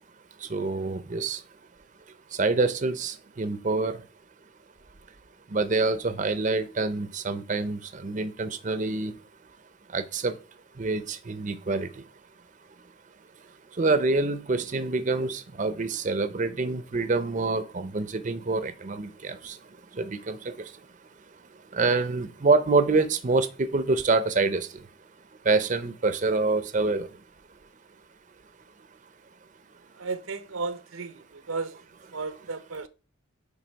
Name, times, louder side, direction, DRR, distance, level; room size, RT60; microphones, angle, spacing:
voice 1, 0.4-1.4 2.3-4.0 5.5-9.1 9.9-10.3 10.8-12.0 13.8-19.6 19.9-20.7 21.7-24.8 25.4-27.1, right 3 dB, 40° right, 0.5 m, -26 dB
voice 2, 30.0-31.7 32.1-32.9, right 4 dB, 90° right, 0.8 m, -34 dB
9.3 x 3.5 x 4.6 m
head